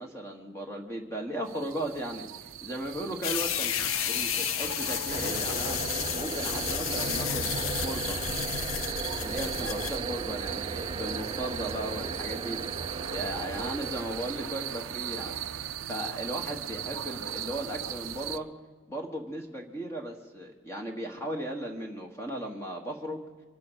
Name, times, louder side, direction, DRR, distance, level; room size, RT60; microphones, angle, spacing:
voice 1, 0.0-3.8 4.0-5.8 6.1-8.3 9.2-15.4 15.9-18.5 18.9-23.2, right 1 dB, 15° left, 1 dB, 1.5 m, -36 dB
sound 1, 1.5-18.4, right 10 dB, 80° right, 0.6 m, -38 dB
sound 2, 3.2-10.0, left 9 dB, 90° left, 0.7 m, -32 dB
sound 3, 5.1-15.4, right 4 dB, 25° right, 0.5 m, -37 dB
25.0 x 8.5 x 6.4 m, 1.3 s
head